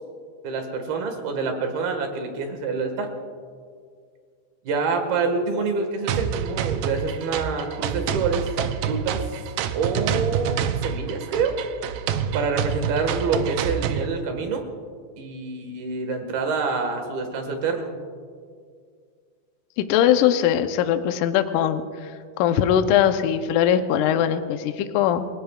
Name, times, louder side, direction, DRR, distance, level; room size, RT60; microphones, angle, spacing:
voice 1, 0.4-3.1 4.7-8.5 8.8-9.3 9.7-11.6 12.3-14.7 15.2-17.9, right 4 dB, 70° right, 5 dB, 3.5 m, -26 dB
sound 1, 6.1-14.1, right 8 dB, 90° right, 1.9 m, -27 dB
voice 2, 19.8-22.1 22.4-25.3, left 10 dB, 90° left, 8 dB, 1.8 m, -21 dB
30.0 x 18.0 x 2.4 m, 2.1 s
omnidirectional pair, 4.7 m